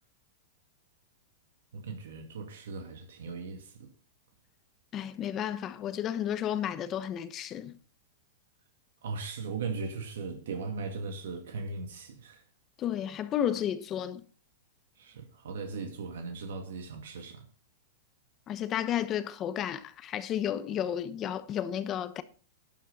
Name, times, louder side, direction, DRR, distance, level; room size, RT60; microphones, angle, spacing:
voice 1, 1.7-3.9 9.0-12.4 15.0-17.5, right 4 dB, 80° right, 2.2 m, -38 dB
voice 2, 4.9-7.7 12.8-14.2 18.5-22.2, left 10 dB, 25° left, 0.8 m, -32 dB
12.0 x 9.4 x 4.0 m
supercardioid pair, 155°, 0 cm